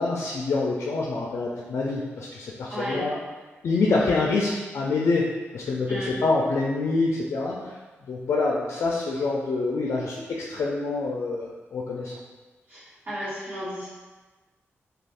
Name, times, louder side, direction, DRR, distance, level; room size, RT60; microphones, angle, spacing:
voice 1, 0.0-3.2 3.6-5.3 5.5-7.7 8.1-12.1, left 3 dB, 70° left, -3 dB, 0.4 m, -26 dB
voice 2, 2.7-3.1 5.9-6.1 12.7-13.9, equal, 45° right, -10 dB, 1.5 m, -33 dB
2.4 x 2.3 x 3.4 m, 1.3 s
wide cardioid pair, 100°, 5 cm